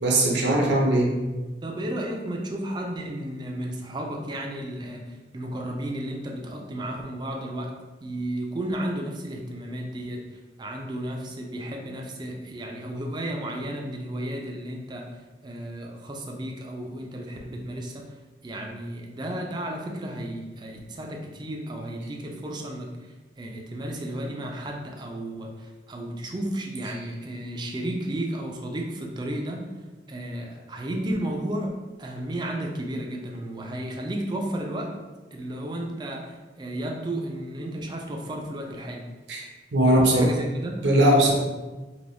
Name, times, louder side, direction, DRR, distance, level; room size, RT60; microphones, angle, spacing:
voice 1, 0.0-1.1 39.3-39.4 39.7-40.3 40.8-41.3, right 1 dB, 75° right, -1 dB, 0.6 m, -19 dB
voice 2, 1.6-7.7 8.0-10.2 10.6-15.1 15.4-18.1 18.4-22.9 23.4-29.7 30.1-34.9 35.3-39.0 39.8-40.9, right 1 dB, 25° right, 1 dB, 0.4 m, -33 dB
3.3 x 2.6 x 2.5 m, 1.2 s
head